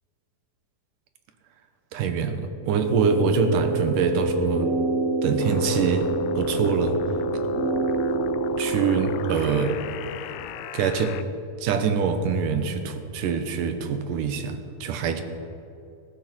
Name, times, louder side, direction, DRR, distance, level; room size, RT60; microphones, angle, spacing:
voice 1, 1.9-4.7 5.2-7.0 8.6-9.8 10.7-11.2 11.6-15.2, right 5 dB, 75° right, 7 dB, 2.6 m, -24 dB
sound 1, 2.6-9.2, right 2 dB, 5° left, 4.3 m, -27 dB
sound 2, 5.4-11.2, left 10 dB, 80° left, 1.8 m, -37 dB
18.5 x 14.5 x 4.4 m, 2.6 s
omnidirectional pair, 3.9 m